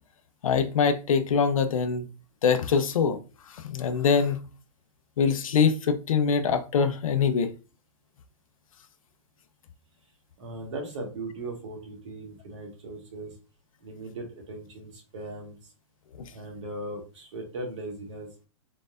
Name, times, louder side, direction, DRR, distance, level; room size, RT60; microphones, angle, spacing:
voice 1, 0.4-2.1 2.4-3.2 3.5-4.4 5.2-7.5 16.2-16.3, left 6 dB, 75° left, 0.7 m, -24 dB
voice 2, 10.4-13.3 13.8-15.7 16.3-18.3, right 2 dB, 60° right, 1.8 m, -38 dB
4.1 x 4.0 x 2.6 m
hypercardioid pair, 165°, 18 cm